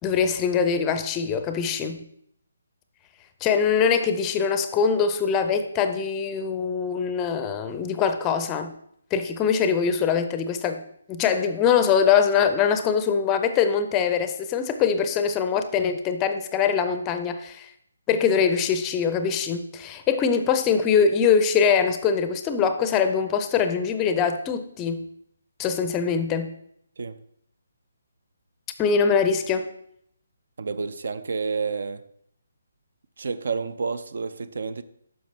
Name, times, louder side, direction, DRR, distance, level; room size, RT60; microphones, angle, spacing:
voice 1, 0.0-2.0 3.4-8.7 9.1-10.8 11.1-17.7 18.1-25.1 25.6-26.5 28.8-29.7, left 6 dB, 15° left, 0.5 m, -23 dB
voice 2, 30.6-32.0 33.2-34.8, right 4 dB, 55° right, 0.5 m, -29 dB
10.0 x 6.2 x 3.1 m
figure-of-eight pair, 140°, 0 cm